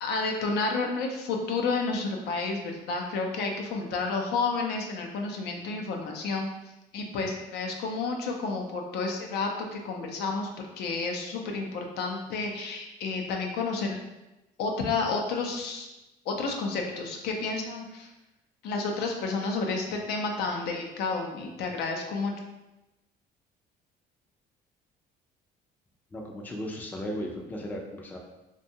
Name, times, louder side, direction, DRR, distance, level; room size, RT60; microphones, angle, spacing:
voice 1, 0.0-6.5 6.9-14.0 14.6-15.9 16.3-18.1 18.6-22.3, left 4 dB, 75° left, 2 dB, 0.5 m, -30 dB
voice 2, 26.1-28.2, equal, 10° left, 0 dB, 0.3 m, -36 dB
2.6 x 2.2 x 2.7 m, 0.99 s
cardioid pair, 110°, 17 cm